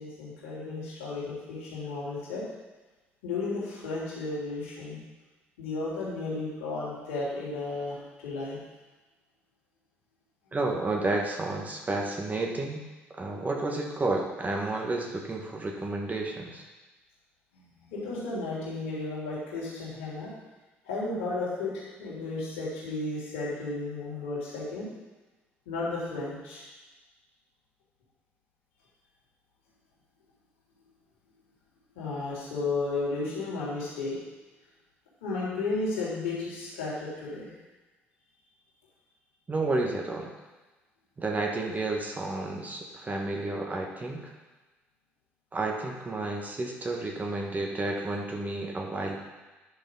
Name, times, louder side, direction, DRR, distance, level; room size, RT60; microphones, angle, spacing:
voice 1, 0.0-2.4 3.2-5.0 5.6-8.0 8.2-8.6 17.5-20.3 20.8-24.9 25.6-26.6 31.9-34.1 35.2-37.5, left 3 dB, 70° left, -7 dB, 3.3 m, -33 dB
voice 2, 10.5-12.8 13.1-16.6 39.5-40.3 41.2-44.3 45.5-49.2, right 2 dB, 25° right, 0 dB, 1.8 m, -31 dB
10.5 x 6.5 x 4.1 m, 1.2 s
figure-of-eight pair, 50°, 6 cm